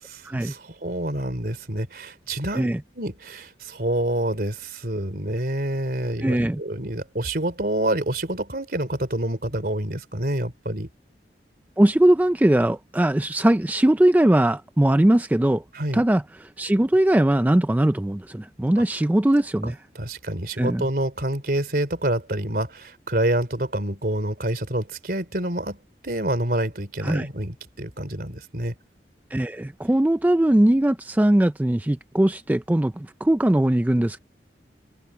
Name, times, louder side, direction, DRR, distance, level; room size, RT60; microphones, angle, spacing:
voice 1, 0.0-2.7 2.9-10.9 15.7-16.0 19.6-25.8 26.0-28.8, right 1 dB, 55° right, 3.4 m, -27 dB
voice 2, 6.2-6.6 11.8-15.6 15.9-19.8 20.6-20.9 27.0-27.3 29.3-34.2, right 1 dB, 10° right, 0.3 m, -20 dB
head